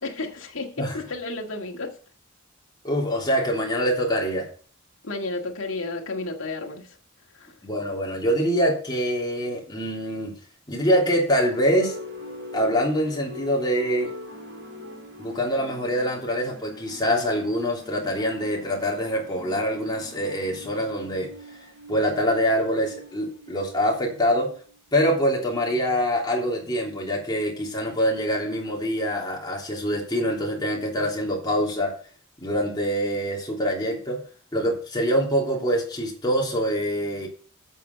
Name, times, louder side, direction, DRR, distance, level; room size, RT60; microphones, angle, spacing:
voice 1, 0.0-2.0 5.0-7.0 7.3-7.6, left 2 dB, 70° left, 2 dB, 1.9 m, -32 dB
voice 2, 2.8-4.5 7.6-10.4 10.7-12.0 12.5-14.1 15.2-21.3 21.9-24.5 24.9-31.9 32.4-34.2 34.5-37.3, equal, 20° left, -2 dB, 3.1 m, -25 dB
sound 1, 11.6-25.0, left 1 dB, 65° right, 3.0 m, -42 dB
8.3 x 7.1 x 6.8 m, 0.43 s
head